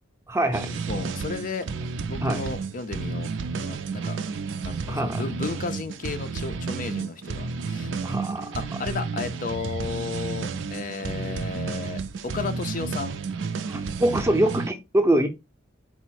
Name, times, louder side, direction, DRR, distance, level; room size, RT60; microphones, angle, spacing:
voice 1, 0.3-0.8 2.2-2.4 4.9-5.3 8.0-8.5 13.7-15.3, right 1 dB, 15° right, 0.5 m, -24 dB
sound 1, 0.5-14.7, right 4 dB, 65° right, 0.4 m, -31 dB
voice 2, 0.9-1.7 2.1-3.3 3.6-4.2 4.6-7.9 8.5-13.2, left 4 dB, 40° left, 0.4 m, -33 dB
4.1 x 2.0 x 4.5 m
head